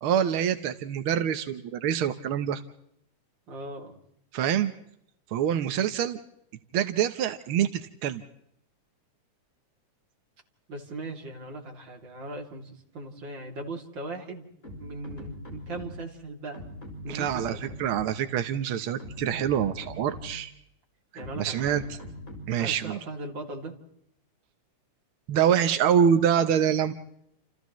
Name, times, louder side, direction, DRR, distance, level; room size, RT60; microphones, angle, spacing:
voice 1, 0.0-2.6 4.3-4.7 5.3-6.2 6.7-8.2 17.1-20.5 21.4-21.8 22.5-23.0 25.3-26.9, right 9 dB, 70° right, 9 dB, 1.2 m, -25 dB
voice 2, 3.5-3.9 10.7-14.5 14.8-16.6 17.0-17.6 21.1-21.9 22.5-23.7, right 2 dB, 35° right, 1 dB, 3.3 m, -39 dB
sound 1, 14.6-16.2 16.5-18.3 18.9-20.5 21.2-22.7, left 1 dB, 25° left, 6.1 m, -41 dB
29.5 x 29.0 x 3.1 m, 0.76 s
omnidirectional pair, 3.6 m